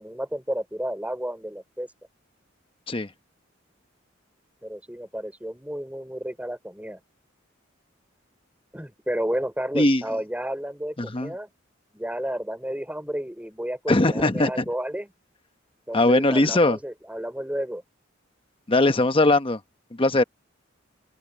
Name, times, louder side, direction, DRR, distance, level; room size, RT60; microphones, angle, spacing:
voice 1, 0.0-1.9 4.6-7.0 8.7-11.5 11.9-15.1 15.9-17.8, equal, 5° right, 5.3 m, -31 dB
voice 2, 11.0-11.3 13.9-14.5 15.9-16.8 18.7-19.6 20.0-20.2, left 2 dB, 25° left, 1.0 m, -20 dB
open air
head